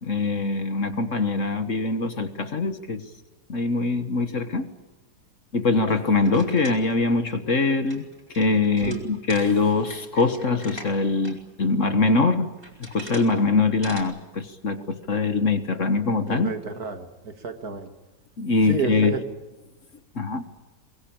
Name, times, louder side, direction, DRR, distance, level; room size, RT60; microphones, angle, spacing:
voice 1, 0.0-3.0 3.5-4.7 5.5-8.1 8.4-12.5 12.8-16.5 18.4-19.2 20.2-20.4, left 3 dB, 50° left, 10 dB, 1.7 m, -23 dB
sound 1, 6.1-11.3 11.7-11.8 12.4-13.4 13.6-14.0, equal, 15° right, 4.9 m, -43 dB
voice 2, 16.3-17.9 18.7-19.2, right 5 dB, 60° right, 7 dB, 2.5 m, -30 dB
23.5 x 21.5 x 8.8 m, 1.1 s
omnidirectional pair, 1.8 m